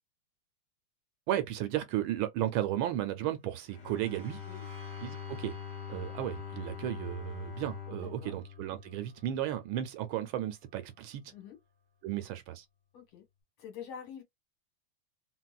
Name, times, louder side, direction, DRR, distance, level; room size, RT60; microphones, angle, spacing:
voice 1, 1.3-4.4 5.0-5.6 5.9-11.3 12.0-12.6, right 12 dB, 75° right, 1.3 m, -34 dB
sound 1, 3.4-11.0, right 2 dB, 40° right, 0.8 m, -59 dB
Bowed string instrument, 3.7-9.6, left 8 dB, 50° left, 1.0 m, -43 dB
voice 2, 8.0-8.3 11.3-11.6 12.9-13.2 13.6-14.2, left 8 dB, 80° left, 2.3 m, -46 dB
4.1 x 2.2 x 2.3 m
omnidirectional pair, 2.3 m